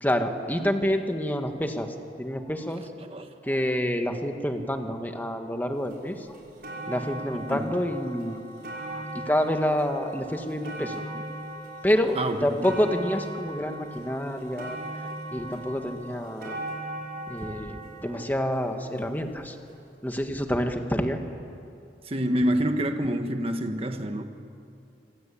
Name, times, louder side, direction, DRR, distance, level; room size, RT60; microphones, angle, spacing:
voice 1, 0.0-2.9 3.4-6.4 6.8-8.4 8.7-11.2 11.8-14.8 15.3-16.6 17.3-19.6 20.0-21.2, equal, 10° left, 5 dB, 1.8 m, -28 dB
sound 1, 5.9-6.0 6.3-19.5 20.3-20.4, right 1 dB, 55° right, 5.9 m, -39 dB
voice 2, 12.1-12.7 22.0-24.2, right 1 dB, 30° right, 6 dB, 1.4 m, -27 dB
26.5 x 24.5 x 8.7 m, 2.6 s
head